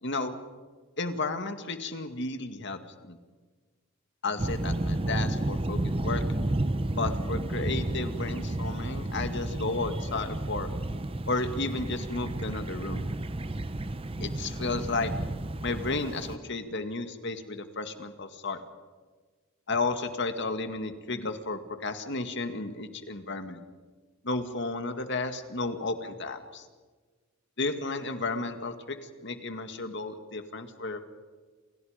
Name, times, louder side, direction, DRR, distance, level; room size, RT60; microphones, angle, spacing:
voice 1, 0.0-0.3 1.0-2.8 3.0-3.2 4.2-6.2 7.0-10.7 11.3-13.0 14.2-15.1 15.6-18.6 19.7-23.6 24.2-26.6 27.6-29.0 29.2-31.0, left 3 dB, 55° left, 7 dB, 2.1 m, -33 dB
sound 1, 4.4-16.4, right 1 dB, 25° right, 0.8 m, -32 dB
29.0 x 28.5 x 5.2 m, 1.4 s
head